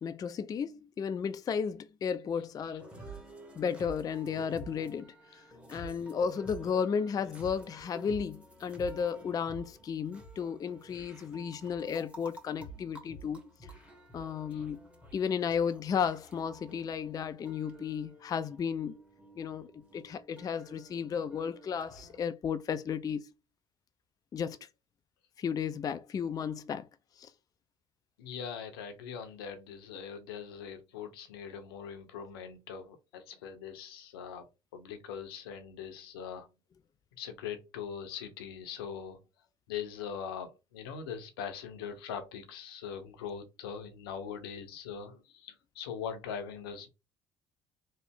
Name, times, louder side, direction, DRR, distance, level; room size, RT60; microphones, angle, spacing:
voice 1, 0.0-2.9 3.6-5.4 5.7-13.4 14.1-14.8 15.1-19.0 19.4-19.7 19.9-23.3 24.3-24.6 25.4-26.9 27.2-27.3, left 7 dB, 30° left, 0.3 m, -34 dB
sound 1, 2.8-22.2, right 1 dB, 10° right, 1.1 m, -50 dB
voice 2, 28.2-34.4 34.7-36.5 37.2-39.2 39.7-46.9, left 7 dB, 80° left, 0.7 m, -41 dB
3.1 x 2.1 x 3.4 m
hypercardioid pair, 60°, 12 cm